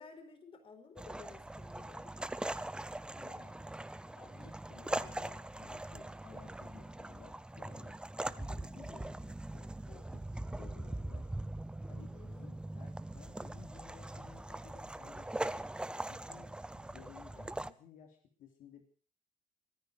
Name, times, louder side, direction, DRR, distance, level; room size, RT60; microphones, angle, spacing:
voice 1, 0.0-2.1 4.4-4.5 10.6-11.1 12.1-12.5, left 4 dB, 40° left, 7 dB, 4.5 m, -55 dB
sound 1, 1.0-17.7, right 1 dB, 5° right, 0.7 m, -41 dB
voice 2, 3.0-3.6 4.2-8.0 8.3-11.3 11.9-15.3 16.1-18.8, left 8 dB, 70° left, 3 dB, 3.4 m, -58 dB
23.0 x 10.5 x 6.2 m, 0.43 s
cardioid pair, 125°, 14 cm